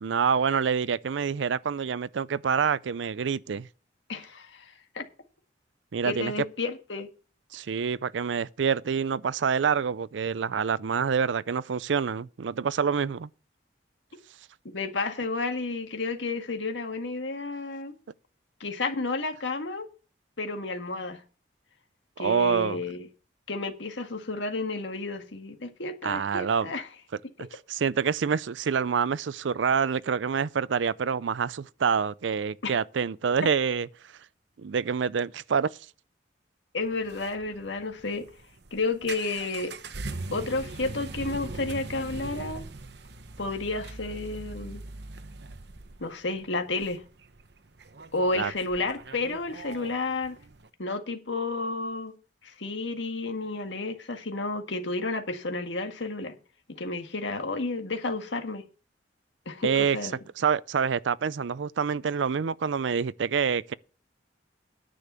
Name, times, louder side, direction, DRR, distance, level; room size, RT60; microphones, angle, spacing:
voice 1, 0.0-3.7 5.9-6.3 7.5-13.3 22.2-22.8 26.0-26.7 27.7-33.9 34.6-35.7 48.3-48.5 59.6-60.0 60.4-63.7, right 6 dB, 85° right, 0.5 m, -26 dB
voice 2, 4.1-5.1 6.0-7.1 14.7-17.9 18.6-19.9 20.4-21.2 22.2-23.1 23.5-26.9 32.6-32.7 36.7-38.3 38.7-39.7 40.3-42.7 43.4-44.8 46.0-47.0 48.1-50.4 50.8-52.1 52.4-56.3 56.7-58.6 59.5-60.2, left 3 dB, 85° left, 1.8 m, -31 dB
sound 1, 36.8-50.7, right 3 dB, 65° right, 0.9 m, -41 dB
10.0 x 6.8 x 6.8 m
head